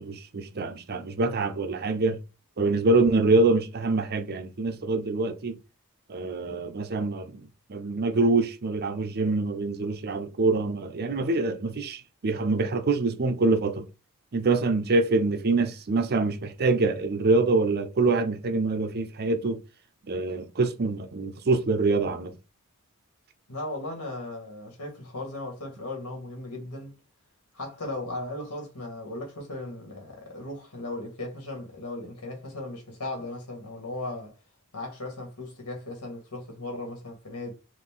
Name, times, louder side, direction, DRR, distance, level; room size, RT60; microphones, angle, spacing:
voice 1, 0.0-2.2 2.6-5.6 6.1-13.9 14.3-19.6 20.1-22.4, right 3 dB, 45° right, 0.6 m, -25 dB
voice 2, 23.5-26.9 27.5-34.4 34.7-37.5, left 2 dB, 90° left, 1.9 m, -37 dB
4.1 x 2.6 x 3.7 m
head